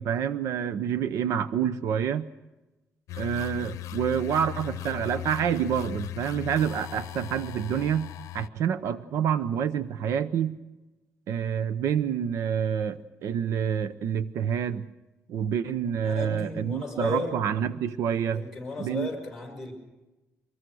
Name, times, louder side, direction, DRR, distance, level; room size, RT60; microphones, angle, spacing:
voice 1, 0.0-2.3 3.2-10.6 11.3-14.9 15.3-18.4 18.8-19.1, right 8 dB, 70° right, 13 dB, 0.7 m, -28 dB
sound 1, 3.1-8.5, left 14 dB, 80° left, 0.7 m, -38 dB
voice 2, 16.0-17.4 18.3-19.7, left 3 dB, ahead, 0 dB, 6.1 m, -34 dB
24.0 x 21.5 x 6.2 m, 1.1 s
cardioid pair, 175°, 5 cm